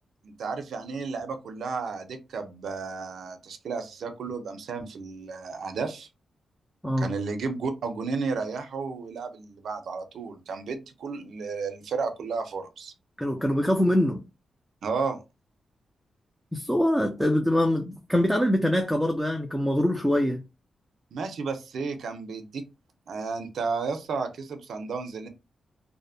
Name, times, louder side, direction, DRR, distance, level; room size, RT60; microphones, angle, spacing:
voice 1, 0.2-6.1 7.0-12.9 14.8-15.2 21.1-22.6 23.1-25.3, right 4 dB, 70° right, 0.5 m, -33 dB
voice 2, 13.2-14.2 16.5-20.4, left 1 dB, ahead, 0.3 m, -24 dB
2.6 x 2.0 x 2.6 m
wide cardioid pair, 145°, 0 cm